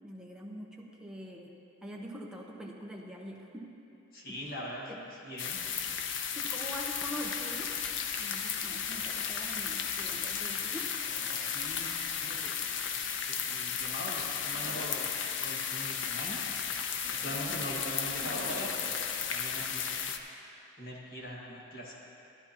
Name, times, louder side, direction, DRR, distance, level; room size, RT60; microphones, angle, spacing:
voice 1, 0.0-1.5 1.8-3.7 4.3-4.4 4.9-5.0 6.4-7.7 8.2-10.9, equal, 5° right, -2 dB, 0.9 m, -44 dB
voice 2, 4.1-5.6 11.3-11.9 12.2-12.7 13.3-15.1 15.4-16.4 17.2-19.0 19.3-20.1 20.8-21.9, equal, 50° left, -4 dB, 1.7 m, -42 dB
sound 1, 5.4-20.2, left 7 dB, 70° left, 0.5 m, -34 dB
sound 2, 11.0-12.4 13.2-13.6 14.4-15.1 15.8-16.1 17.0-18.9, right 1 dB, 80° right, 1.6 m, -46 dB
14.5 x 10.5 x 2.9 m, 2.8 s
head